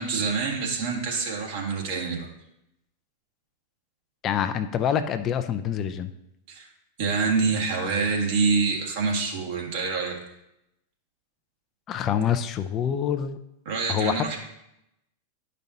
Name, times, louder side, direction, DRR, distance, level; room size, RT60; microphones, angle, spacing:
voice 1, 0.0-2.3 6.5-6.7 7.0-10.2 13.7-14.4, right 4 dB, 60° right, -1 dB, 1.9 m, -26 dB
voice 2, 4.2-6.1 11.9-13.4 13.9-14.3, left 9 dB, 35° left, 9 dB, 0.5 m, -26 dB
10.5 x 5.3 x 2.8 m, 0.83 s
hypercardioid pair, 100°, 0 cm